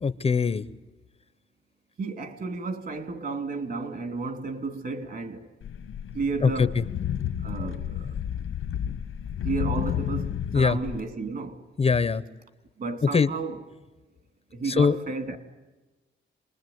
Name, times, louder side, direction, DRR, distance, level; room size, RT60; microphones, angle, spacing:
voice 1, 0.0-0.6 6.4-6.7 10.5-10.8 11.8-12.2 13.1-13.3 14.7-15.0, left 5 dB, 30° left, 0.8 m, -22 dB
voice 2, 2.0-5.5 6.1-6.8 7.4-8.2 9.4-11.6 12.8-13.6 14.5-15.4, right 4 dB, 50° right, 3.0 m, -32 dB
sound 1, 5.6-11.0, left 9 dB, 90° left, 1.5 m, -31 dB
27.0 x 21.0 x 9.4 m
wide cardioid pair, 145°, 20 cm